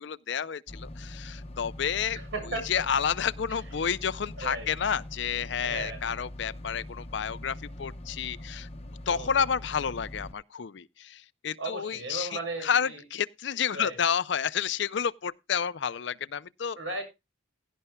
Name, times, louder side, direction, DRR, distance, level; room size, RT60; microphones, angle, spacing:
voice 1, 0.0-2.2 2.7-8.7 9.1-16.8, left 7 dB, 60° left, 0.5 m, -30 dB
sound 1, 0.7-10.3, left 1 dB, 30° left, 0.9 m, -42 dB
voice 2, 2.1-2.7 4.4-4.7 5.6-6.0 9.1-9.4 11.6-13.0 13.7-14.0 16.8-17.0, right 2 dB, 70° right, 7.2 m, -36 dB
16.5 x 11.0 x 2.3 m
head